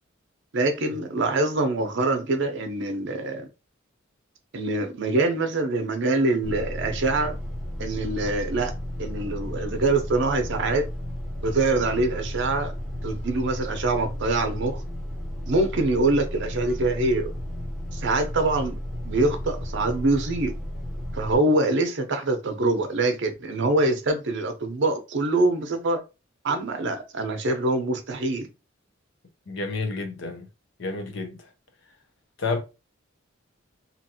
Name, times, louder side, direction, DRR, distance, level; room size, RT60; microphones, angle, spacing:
voice 1, 0.5-3.5 4.5-7.4 7.8-8.7 9.0-10.9 11.4-12.7 13.0-14.8 15.5-17.3 17.9-18.8 19.0-20.5 21.1-26.0 26.4-28.5, right 2 dB, 60° right, 0.7 m, -24 dB
room tone elevator still +up and down floors, 6.4-21.4, equal, ahead, 0.7 m, -33 dB
voice 2, 29.5-30.5 30.8-31.4 32.4-32.6, left 3 dB, 65° left, 0.7 m, -29 dB
2.9 x 2.5 x 2.7 m
head